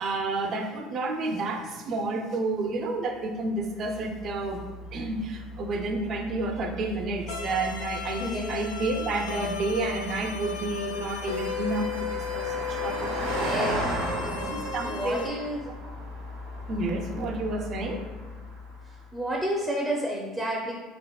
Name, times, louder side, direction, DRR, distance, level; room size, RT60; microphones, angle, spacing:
voice 1, 0.0-4.6 4.9-13.1 13.6-13.7 14.2-15.3 16.7-18.0, right 2 dB, 50° right, 4 dB, 0.5 m, -30 dB
Car passing by, 3.3-19.1, equal, 85° right, 0.9 m, -37 dB
sound 1, 7.3-15.3, left 6 dB, 90° left, 0.4 m, -35 dB
voice 2, 8.1-8.5 13.4-13.8 14.2-14.6 14.8-15.6 19.1-20.8, equal, 5° right, -2 dB, 0.5 m, -31 dB
3.4 x 3.2 x 2.3 m, 1.3 s
hypercardioid pair, 80°, 0 cm